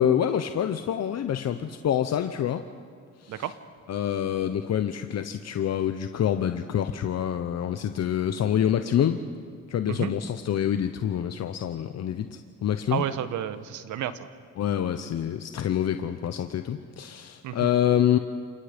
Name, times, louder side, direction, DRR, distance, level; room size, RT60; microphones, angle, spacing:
voice 1, 0.0-2.6 3.2-3.4 3.9-9.2 9.7-13.1 14.6-18.2, left 10 dB, 60° left, 8 dB, 0.9 m, -26 dB
voice 2, 12.9-14.1 17.4-17.7, right 10 dB, 75° right, 12 dB, 1.1 m, -31 dB
29.5 x 19.5 x 5.2 m, 2.1 s
cardioid pair, 90°, 30 cm